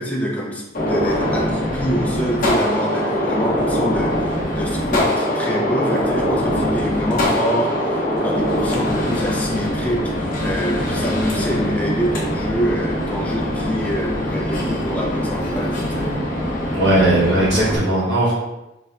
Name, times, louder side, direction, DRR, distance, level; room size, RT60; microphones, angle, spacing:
voice 1, 0.0-16.1, equal, 10° left, -3 dB, 0.5 m, -25 dB
Gunshot gunfire, 0.7-17.8, equal, 45° left, 0.8 m, -22 dB
voice 2, 16.7-18.3, right 1 dB, 80° right, -6 dB, 1.3 m, -17 dB
4.2 x 2.2 x 2.4 m, 0.96 s
head